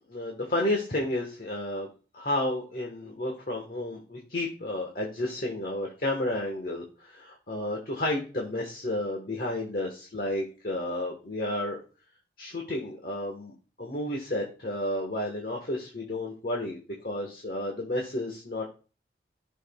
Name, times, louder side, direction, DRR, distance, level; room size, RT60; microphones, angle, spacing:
voice 1, 0.1-1.9 2.1-11.8 12.4-13.5 13.8-16.8 17.0-18.7, left 1 dB, 50° left, 0 dB, 1.5 m, -31 dB
14.5 x 6.3 x 2.4 m, 0.35 s
head